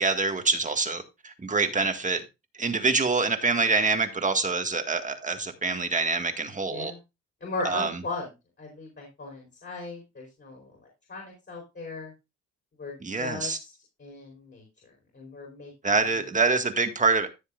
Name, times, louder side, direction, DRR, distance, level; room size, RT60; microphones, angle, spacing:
voice 1, 0.0-2.2 2.6-6.9 7.6-8.0 13.0-13.6 15.8-17.4, right 4 dB, 25° right, 1.8 m, -25 dB
voice 2, 6.7-7.0 7.4-8.3 8.6-10.8 11.1-12.1 12.8-13.7 14.0-14.6 15.1-16.0, left 3 dB, 35° left, 4.5 m, -37 dB
14.5 x 7.1 x 2.5 m
cardioid pair, 90°, 30 cm